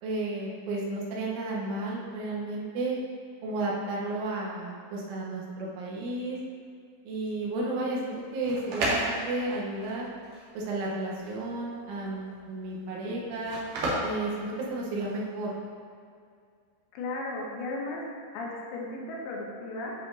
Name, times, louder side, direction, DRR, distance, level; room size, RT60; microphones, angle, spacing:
voice 1, 0.0-3.0 3.4-6.4 7.1-10.1 10.6-13.6 14.0-15.5, right 2 dB, 85° right, -4 dB, 3.6 m, -32 dB
sound 1, 8.2-15.2, right 1 dB, 65° right, 2.1 m, -34 dB
voice 2, 16.9-18.0 18.3-19.9, left 2 dB, 80° left, -2 dB, 3.1 m, -35 dB
10.5 x 4.9 x 2.7 m, 2.2 s
omnidirectional pair, 5.3 m